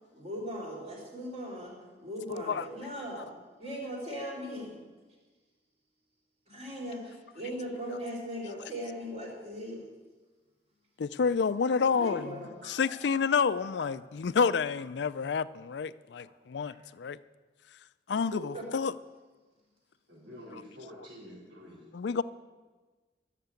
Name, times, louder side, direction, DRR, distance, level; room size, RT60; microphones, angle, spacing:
voice 1, 0.1-1.7 2.0-3.3 3.6-4.7 6.5-9.8 11.9-12.5 18.3-18.7, equal, 35° right, -3 dB, 3.6 m, -39 dB
voice 2, 2.3-2.7 11.0-12.4 12.6-17.2 18.1-18.9 21.9-22.2, left 5 dB, 70° left, 16 dB, 0.4 m, -29 dB
sound 1, 10.8-10.9 12.4-13.9 14.4-14.8 15.2-15.4 16.2-16.3 16.6-17.1, right 1 dB, 65° right, 3.3 m, -51 dB
voice 3, 20.1-21.9, equal, 85° right, -9 dB, 4.5 m, -48 dB
14.0 x 6.7 x 8.2 m, 1.3 s
head